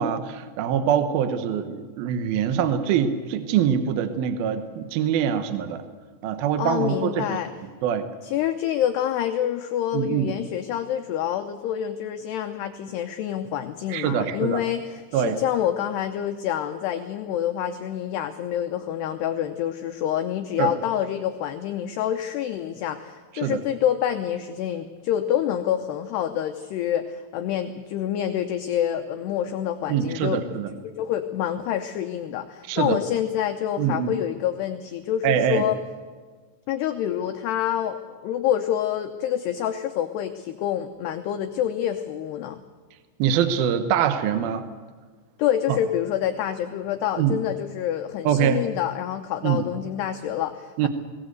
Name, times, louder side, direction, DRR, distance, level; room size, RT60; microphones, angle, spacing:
voice 1, 0.0-5.8 6.2-7.2 7.8-8.1 9.9-10.3 13.9-14.6 15.1-15.4 20.6-20.7 23.4-23.6 29.9-30.7 32.7-33.0 33.8-34.1 35.2-35.6 43.2-44.6 47.2-47.4 48.2-48.6 49.4-49.6 50.8-50.9, right 8 dB, 75° right, 9 dB, 2.2 m, -24 dB
voice 2, 6.6-7.5 8.2-30.4 30.8-35.8 36.7-42.6 45.4-50.9, left 10 dB, 85° left, 6 dB, 2.3 m, -27 dB
21.0 x 18.0 x 8.0 m, 1.5 s
omnidirectional pair, 5.9 m